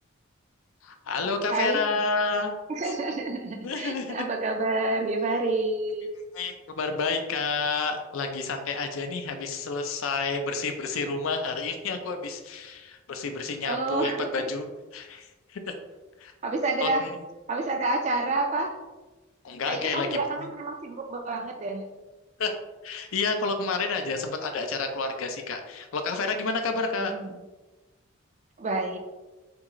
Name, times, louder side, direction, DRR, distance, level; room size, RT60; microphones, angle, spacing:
voice 1, 0.8-2.5 3.6-4.3 6.3-14.7 14.9-15.7 16.2-16.3 16.8-17.1 19.4-20.2 22.4-22.5 22.8-27.1, left 4 dB, 75° left, 6 dB, 0.4 m, -29 dB
voice 2, 1.5-1.8 2.7-6.1 13.6-14.3 16.4-17.1 17.5-18.7 19.7-21.9 27.0-27.4 28.6-29.0, right 2 dB, 35° right, 4 dB, 0.3 m, -29 dB
3.5 x 2.4 x 2.9 m, 1.1 s
head